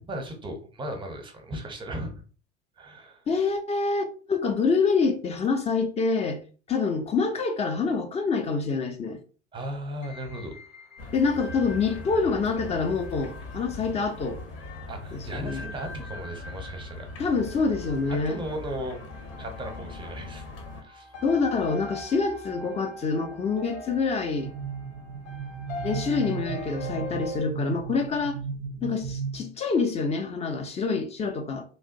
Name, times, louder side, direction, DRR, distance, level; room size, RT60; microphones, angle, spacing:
voice 1, 0.0-2.1 2.8-3.2 9.5-10.5 14.9-17.1 18.2-19.0 19.4-20.4 20.8-21.1, right 1 dB, 15° right, 0.7 m, -36 dB
voice 2, 3.3-6.4 6.7-9.2 11.1-14.4 15.1-15.6 17.2-18.4 21.2-24.5 25.8-28.4 28.8-31.6, left 4 dB, 20° left, 0.4 m, -26 dB
sound 1, 10.0-27.4, left 2 dB, 70° left, 1.2 m, -43 dB
sound 2, 11.0-20.8, left 2 dB, 55° left, 0.9 m, -41 dB
sound 3, 24.4-29.4, right 6 dB, 50° right, 0.4 m, -35 dB
3.1 x 2.4 x 2.5 m
figure-of-eight pair, 75°, 35 cm